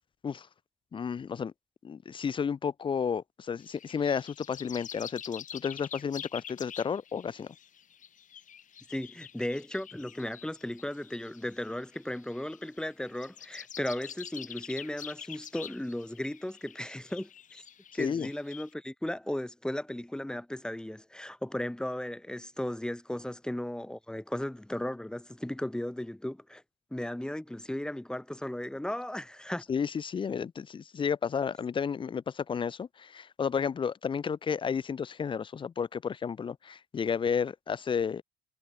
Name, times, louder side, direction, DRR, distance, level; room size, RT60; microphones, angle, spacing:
voice 1, 0.9-1.5 1.8-7.5 18.0-18.3 29.7-38.2, left 6 dB, 30° left, 0.6 m, -32 dB
sound 1, 3.6-18.7, left 9 dB, 50° left, 5.7 m, -47 dB
voice 2, 8.9-17.6 17.9-26.6 26.9-29.6, left 1 dB, 5° left, 2.1 m, -36 dB
cardioid pair, 110°, 17 cm